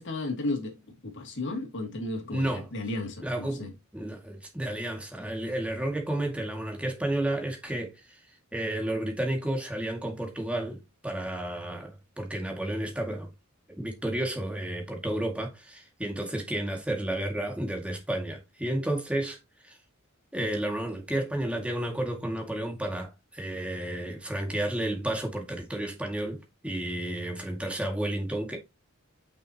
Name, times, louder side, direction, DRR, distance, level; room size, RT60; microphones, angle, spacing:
voice 1, 0.0-3.7, left 2 dB, 60° left, 2.5 m, -34 dB
voice 2, 2.3-2.7 3.2-3.6 3.9-8.2 8.5-13.3 13.7-19.4 19.6-19.8 20.3-28.6, right 1 dB, 5° right, 2.1 m, -32 dB
6.9 x 6.1 x 2.9 m
head